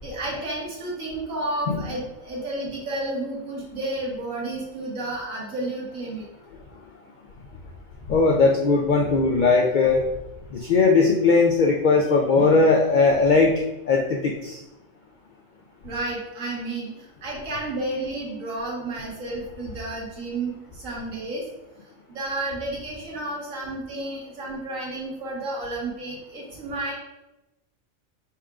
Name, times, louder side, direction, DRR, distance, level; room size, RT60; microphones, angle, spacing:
voice 1, 0.0-6.3 15.8-21.4 22.1-26.9, right 2 dB, 85° right, -4 dB, 1.7 m, -31 dB
voice 2, 8.1-10.0 10.5-14.6, left 3 dB, 75° left, 0 dB, 0.4 m, -19 dB
4.4 x 2.4 x 4.7 m, 0.97 s
omnidirectional pair, 1.3 m